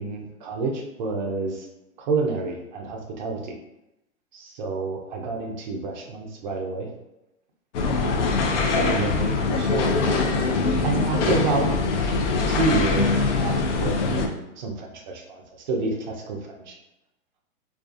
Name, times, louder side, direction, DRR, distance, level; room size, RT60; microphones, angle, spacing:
voice 1, 0.0-1.7 2.0-3.6 4.3-6.9 8.0-9.9 10.8-11.7 12.0-12.2 12.5-15.4 15.7-16.7, right 3 dB, 35° right, 1 dB, 0.4 m, -29 dB
sound 1, 7.7-14.3, left 3 dB, 55° left, 0.5 m, -23 dB
2.4 x 2.3 x 2.4 m, 0.89 s
hypercardioid pair, 125°, 43 cm